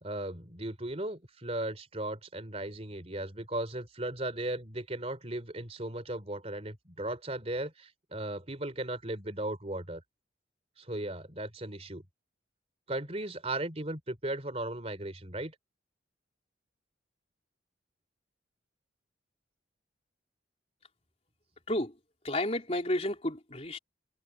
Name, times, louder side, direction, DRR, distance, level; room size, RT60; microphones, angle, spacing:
voice 1, 0.0-10.0 10.8-12.0 12.9-15.5, right 1 dB, 35° right, 3.7 m, -36 dB
voice 2, 22.2-23.8, left 1 dB, 35° left, 4.4 m, -31 dB
head